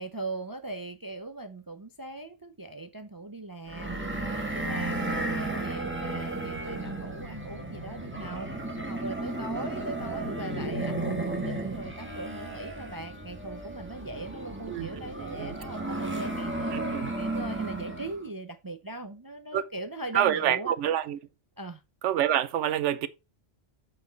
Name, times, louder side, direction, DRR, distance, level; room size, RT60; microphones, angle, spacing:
voice 1, 0.0-4.0 4.5-8.5 8.9-20.7 21.6-21.8, right 2 dB, 30° right, 0.4 m, -39 dB
sound 1, 3.7-18.2, right 2 dB, 10° right, 1.5 m, -34 dB
voice 2, 14.7-15.5 16.7-17.1 19.5-19.6 20.1-21.2 22.0-23.1, right 10 dB, 80° right, 0.9 m, -27 dB
8.2 x 4.7 x 4.5 m
omnidirectional pair, 1.2 m